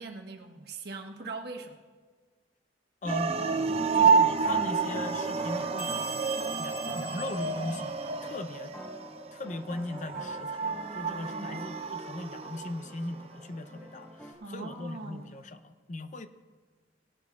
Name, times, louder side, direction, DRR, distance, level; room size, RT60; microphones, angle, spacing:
voice 1, 0.0-1.8 11.3-11.6 14.4-15.3, right 3 dB, 60° right, 3 dB, 1.3 m, -41 dB
voice 2, 3.0-3.3 3.9-6.2 6.6-8.0 8.2-8.7 9.3-16.3, left 2 dB, 40° left, 10 dB, 0.6 m, -39 dB
sound 1, 3.0-14.3, equal, 10° left, 1.2 m, -47 dB
sound 2, 3.1-13.2, right 5 dB, 35° right, 0.6 m, -29 dB
sound 3, 5.8-8.3, right 4 dB, 85° left, 3.1 m, -41 dB
19.0 x 12.0 x 2.3 m, 1.4 s
head